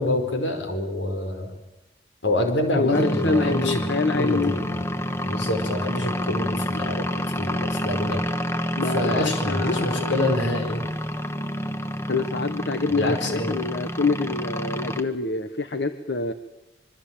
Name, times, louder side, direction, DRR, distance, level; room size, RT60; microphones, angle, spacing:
voice 1, 0.0-1.5 2.2-3.9 4.1-8.2 8.9-10.8 12.9-13.6, left 1 dB, 80° left, 6 dB, 4.7 m, -26 dB
voice 2, 2.7-4.5 8.7-10.1 12.1-16.3, left 3 dB, 60° left, 10 dB, 1.2 m, -26 dB
sound 1, 2.9-15.0, equal, 15° left, 1.2 m, -28 dB
25.5 x 23.0 x 8.9 m, 1.0 s
head